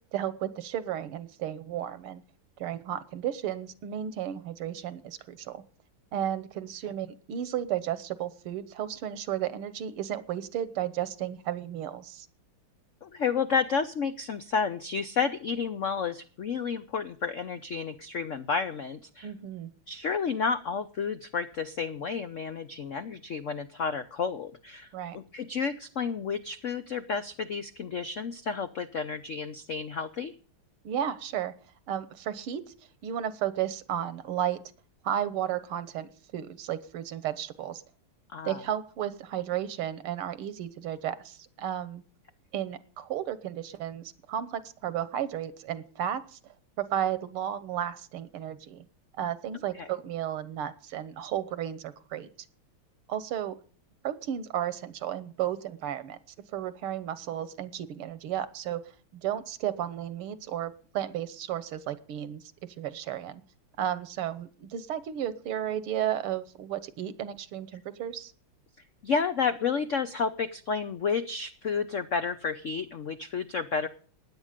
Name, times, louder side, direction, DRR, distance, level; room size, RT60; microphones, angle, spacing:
voice 1, 0.1-2.2 2.6-5.6 6.1-12.3 19.2-19.7 24.9-25.2 30.8-31.5 31.9-32.6 33.0-34.6 35.0-37.8 38.4-42.0 42.5-46.4 46.8-48.8 49.2-52.3 53.1-53.6 54.0-56.2 56.5-58.8 59.1-62.4 62.8-63.4 63.8-68.3, right 10 dB, 80° right, 15 dB, 1.9 m, -33 dB
voice 2, 13.0-19.3 19.9-30.3 38.3-38.6 49.8-49.9 69.0-73.9, left 5 dB, 85° left, 10 dB, 0.6 m, -31 dB
16.0 x 10.0 x 5.1 m, 0.42 s
omnidirectional pair, 2.4 m